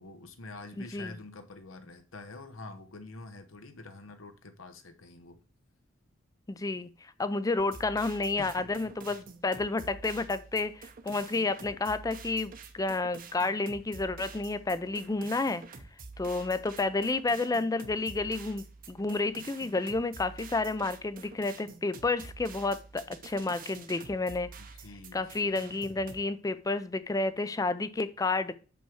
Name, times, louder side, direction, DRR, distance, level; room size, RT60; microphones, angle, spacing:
voice 1, 0.0-5.4 8.4-8.9 24.6-25.6, left 3 dB, 85° left, 0.9 m, -47 dB
voice 2, 6.5-15.6 16.2-24.5 25.1-28.6, left 3 dB, 20° left, 0.4 m, -30 dB
sound 1, 7.6-26.2, right 4 dB, 45° right, 0.8 m, -48 dB
5.4 x 4.5 x 6.2 m
head